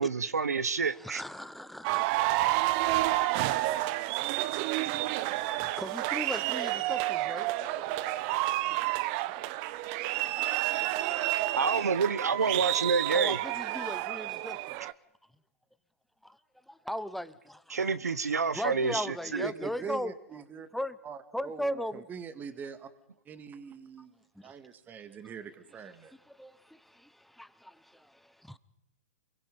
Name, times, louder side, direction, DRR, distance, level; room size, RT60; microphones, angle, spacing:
voice 1, 0.0-1.2 11.5-13.4 17.7-19.0 19.3-19.5, right 5 dB, 85° right, 1.2 m, -28 dB
voice 2, 0.8-3.0 3.8-4.5 4.8-7.5 9.4-9.5 10.2-10.9 13.1-14.9 16.7-17.8 18.5-20.4 20.7-21.0 21.3-22.1 24.0-24.1 24.3-24.5 26.0-28.6, equal, ahead, 1.0 m, -39 dB
sound 1, 1.8-14.9, right 17 dB, 40° right, 0.9 m, -30 dB
voice 3, 19.4-20.7 21.0-21.2 21.4-22.9 23.3-24.1 24.4-26.1, right 7 dB, 20° right, 2.0 m, -43 dB
28.5 x 22.5 x 5.5 m
hypercardioid pair, 115°, 8 cm